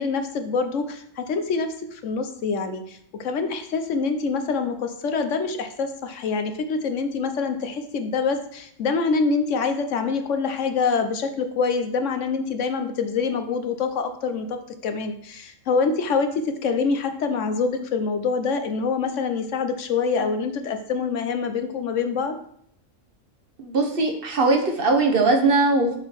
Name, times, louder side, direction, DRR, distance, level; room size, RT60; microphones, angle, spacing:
voice 1, 0.0-22.4, left 4 dB, 70° left, 7 dB, 1.1 m, -25 dB
voice 2, 23.6-26.0, right 3 dB, 50° right, 3 dB, 1.1 m, -20 dB
7.0 x 3.8 x 5.8 m, 0.66 s
omnidirectional pair, 1.3 m